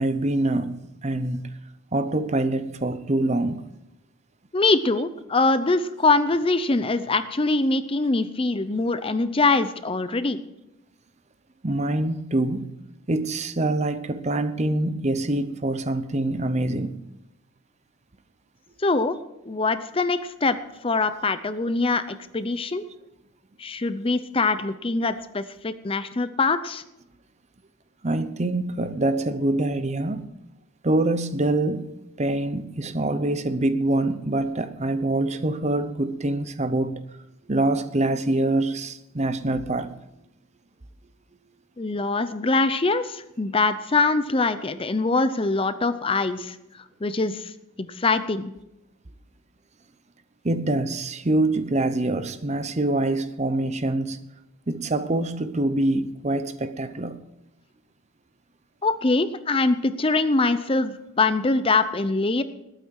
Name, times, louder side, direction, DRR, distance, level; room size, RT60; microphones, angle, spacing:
voice 1, 0.0-1.5 1.9-3.6 11.6-12.7 13.1-17.0 28.0-30.3 30.8-31.9 32.2-37.0 37.5-39.9 50.4-54.2 54.7-57.2, right 2 dB, 30° right, 0.7 m, -25 dB
voice 2, 4.5-10.4 18.8-19.2 19.4-20.6 20.8-22.8 23.6-26.8 41.8-46.6 47.0-47.5 47.8-48.5 58.8-62.4, left 3 dB, 25° left, 0.6 m, -23 dB
20.0 x 9.0 x 4.7 m
head